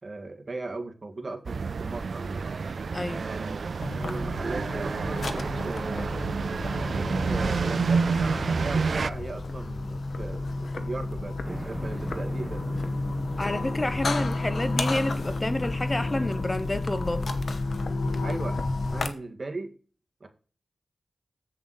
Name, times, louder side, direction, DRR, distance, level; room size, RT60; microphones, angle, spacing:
voice 1, 0.0-2.5 3.1-3.6 3.9-6.3 6.9-12.8 14.2-14.3 18.2-18.6 18.9-19.7 20.2-20.3, right 3 dB, 40° right, 1.7 m, -37 dB
sound 1, 1.5-9.1, right 5 dB, 70° right, 0.3 m, -29 dB
voice 2, 2.9-3.3 13.4-17.3, left 2 dB, 25° left, 0.6 m, -29 dB
sound 2, 3.8-19.1, left 2 dB, 70° left, 0.9 m, -31 dB
sound 3, 11.4-17.6, right 1 dB, 15° right, 1.0 m, -41 dB
7.8 x 6.9 x 4.0 m
wide cardioid pair, 80°, 0 cm